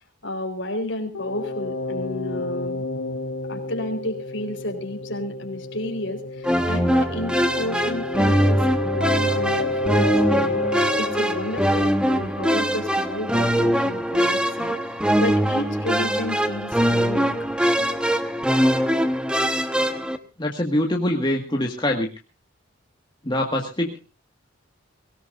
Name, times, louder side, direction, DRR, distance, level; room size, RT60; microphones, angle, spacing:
voice 1, 0.2-2.8 3.5-10.6 11.0-14.7 15.2-17.3, left 1 dB, 55° left, 5 dB, 4.1 m, -31 dB
sound 1, 1.1-12.8, left 2 dB, 80° left, 2.7 m, -30 dB
sound 2, 6.4-20.2, equal, 5° right, 1.1 m, -22 dB
voice 2, 20.4-22.1 23.2-24.0, left 1 dB, 20° left, 1 dB, 1.8 m, -24 dB
23.5 x 17.5 x 2.6 m, 0.32 s
head